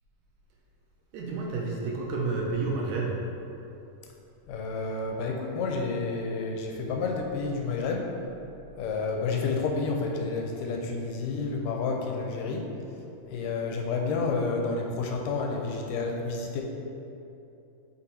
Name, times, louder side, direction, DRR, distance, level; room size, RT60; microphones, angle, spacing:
voice 1, 1.1-3.1, right 3 dB, 80° right, -2 dB, 2.0 m, -30 dB
voice 2, 4.5-8.1 8.8-12.7 13.3-16.6, left 4 dB, 90° left, 1 dB, 2.2 m, -30 dB
5.7 x 4.1 x 4.4 m, 2.8 s
omnidirectional pair, 3.8 m